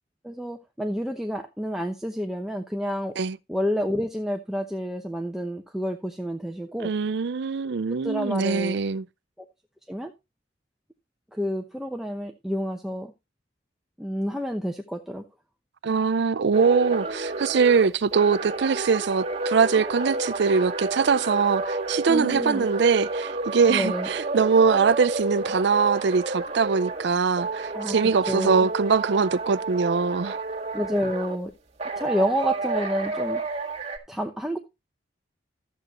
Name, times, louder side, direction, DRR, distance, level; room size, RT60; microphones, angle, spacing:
voice 1, 0.2-3.1 3.5-6.9 8.0-8.8 9.4-9.5 9.9-10.1 11.3-13.1 14.0-15.2 22.1-22.7 23.7-24.1 27.7-28.7 30.7-31.5 32.0-33.4 34.1-34.6, equal, ahead, 0.8 m, -29 dB
voice 2, 6.8-9.0 15.8-30.4, right 5 dB, 65° right, 0.5 m, -22 dB
sound 1, 16.5-27.1 27.4-31.4 31.8-34.0, right 3 dB, 35° right, 1.8 m, -30 dB
13.0 x 8.0 x 3.0 m
head